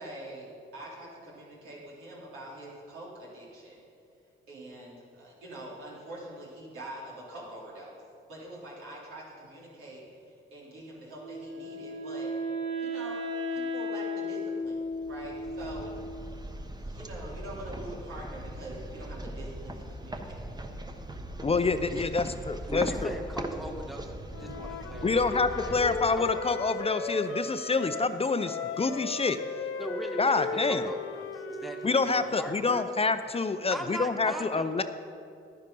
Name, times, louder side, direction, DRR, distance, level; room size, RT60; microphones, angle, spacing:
voice 1, 0.0-3.8 4.5-8.0 8.3-12.3 12.8-14.8 15.1-15.9 16.8-20.8, right 1 dB, 90° right, -5 dB, 3.4 m, -44 dB
Wind instrument woodwind instrument, 11.2-16.2, left 1 dB, 65° right, 2.7 m, -35 dB
Passos nas Escadas Serralves, 14.8-26.9, right 1 dB, 20° right, 1.0 m, -40 dB
voice 2, 21.4-23.1 25.0-29.4 30.2-30.9 31.8-34.8, left 4 dB, 30° left, 10 dB, 0.6 m, -27 dB
voice 3, 22.7-25.1 25.6-26.4 29.8-32.9 33.7-34.8, equal, ahead, 3 dB, 1.3 m, -40 dB
Wind instrument woodwind instrument 2, 24.3-28.1 28.4-32.4, left 4 dB, 80° left, 1.0 m, -37 dB
10.5 x 10.0 x 5.4 m, 2.5 s
cardioid pair, 65°, 21 cm